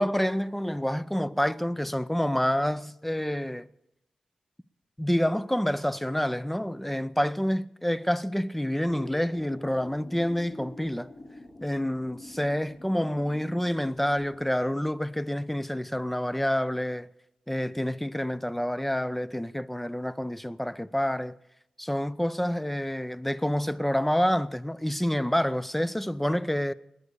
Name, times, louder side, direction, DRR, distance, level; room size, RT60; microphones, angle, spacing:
voice 1, 0.0-3.7 5.0-11.1 11.6-17.1 17.5-21.4 21.8-26.7, equal, 5° left, 0.5 m, -28 dB
sound 1, 8.8-14.4, left 1 dB, 60° left, 4.1 m, -46 dB
20.0 x 8.5 x 6.8 m
cardioid pair, 45°, 2 cm